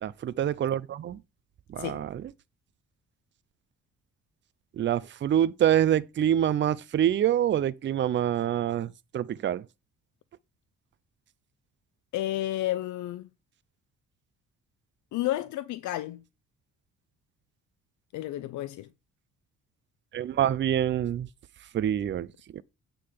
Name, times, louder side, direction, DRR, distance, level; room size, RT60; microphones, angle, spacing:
voice 1, 0.0-1.2 1.7-2.2 4.8-9.6 20.1-21.3 21.7-22.3 22.5-22.6, right 10 dB, 40° right, 0.5 m, -26 dB
voice 2, 12.1-13.3 15.1-16.2 18.1-18.9, left 14 dB, 75° left, 0.5 m, -31 dB
8.5 x 3.8 x 6.4 m
cardioid pair, 90°, 30 cm